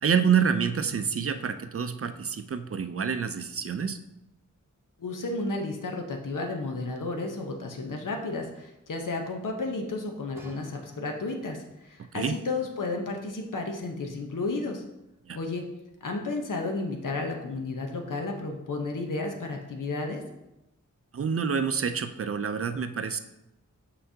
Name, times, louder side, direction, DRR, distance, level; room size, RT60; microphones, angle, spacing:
voice 1, 0.0-4.0 12.0-12.4 15.3-15.4 21.1-23.2, right 6 dB, 50° right, 10 dB, 0.4 m, -27 dB
voice 2, 5.0-14.8 15.3-15.6 16.0-20.2, left 3 dB, 90° left, 3 dB, 0.9 m, -32 dB
sound 1, 10.3-11.6 12.4-12.5, equal, 10° right, 1.2 m, -51 dB
6.7 x 5.8 x 2.7 m, 0.90 s
wide cardioid pair, 75°, 31 cm